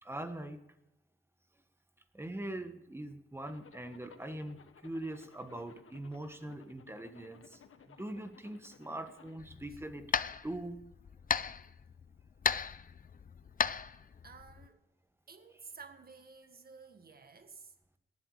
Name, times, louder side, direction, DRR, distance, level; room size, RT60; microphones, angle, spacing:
voice 1, 0.0-0.6 2.1-10.2 10.4-10.8, right 1 dB, 10° right, 1.4 m, -42 dB
Zipper (clothing), 3.4-9.4, left 6 dB, 85° left, 1.4 m, -59 dB
sound 1, 9.4-14.7, left 6 dB, 40° left, 0.5 m, -36 dB
voice 2, 14.2-14.8 15.3-17.7, right 5 dB, 45° right, 1.8 m, -53 dB
18.0 x 12.0 x 4.9 m
wide cardioid pair, 145°, 21 cm